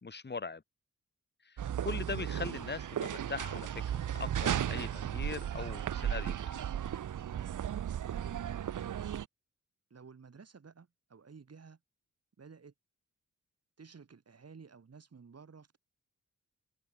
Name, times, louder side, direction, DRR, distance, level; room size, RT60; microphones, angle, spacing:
voice 1, 0.0-0.6 1.4-6.6, left 4 dB, 35° left, 2.7 m, -41 dB
sound 1, 1.6-9.2, right 10 dB, 80° right, 0.8 m, -35 dB
voice 2, 9.9-11.8 12.4-12.7 13.8-15.8, right 5 dB, 55° right, 6.6 m, -54 dB
wide cardioid pair, 125°, 30 cm